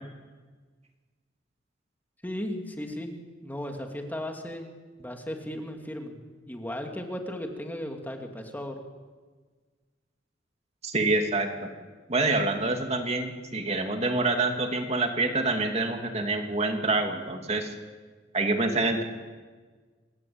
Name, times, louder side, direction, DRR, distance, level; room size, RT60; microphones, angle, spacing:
voice 1, 2.2-3.1 3.4-4.7 5.0-6.2 6.5-8.8, left 1 dB, 10° left, 3 dB, 2.7 m, -35 dB
voice 2, 10.8-11.7 12.1-17.7 18.3-19.0, right 2 dB, 35° right, 4 dB, 2.5 m, -26 dB
28.0 x 21.5 x 8.8 m, 1.4 s
head